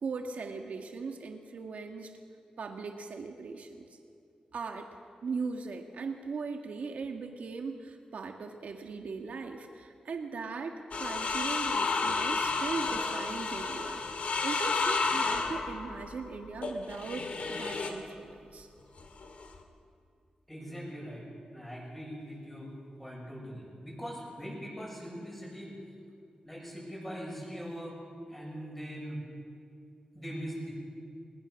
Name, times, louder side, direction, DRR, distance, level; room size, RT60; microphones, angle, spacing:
voice 1, 0.0-2.2 2.6-3.9 4.5-4.9 5.2-18.7, right 4 dB, 80° right, 3 dB, 1.6 m, -39 dB
sound 1, 10.9-18.0 19.0-19.6, left 4 dB, 65° left, 2.2 m, -31 dB
voice 2, 20.5-22.7 23.0-25.8 26.4-28.0 28.3-29.2 30.1-30.7, equal, 10° left, -3 dB, 7.2 m, -41 dB
21.0 x 20.5 x 6.3 m, 2.4 s
wide cardioid pair, 120°, 2 cm